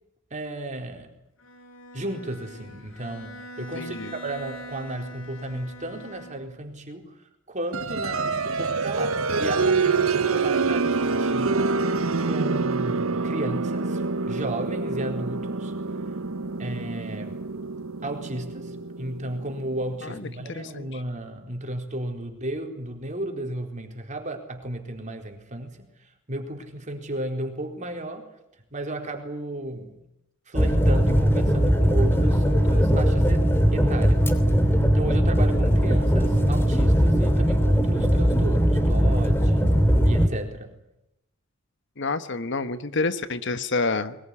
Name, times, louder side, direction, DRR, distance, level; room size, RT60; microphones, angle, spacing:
voice 1, 0.3-1.1 1.9-7.2 7.5-11.6 12.2-15.7 16.6-17.5 18.0-25.9 26.3-28.3 28.7-30.0 30.5-34.3 34.9-39.7 40.0-40.7, right 1 dB, 35° right, 3 dB, 4.3 m, -34 dB
Bowed string instrument, 1.4-6.7, equal, 80° left, 5.9 m, -43 dB
voice 2, 3.7-4.1 20.0-21.0 42.0-44.2, left 3 dB, 60° left, 11 dB, 1.3 m, -29 dB
sound 1, 7.7-20.2, right 4 dB, 80° right, 1.1 m, -26 dB
sound 2, 30.5-40.3, equal, 10° left, 2.9 m, -20 dB
22.5 x 21.0 x 9.9 m, 0.84 s
head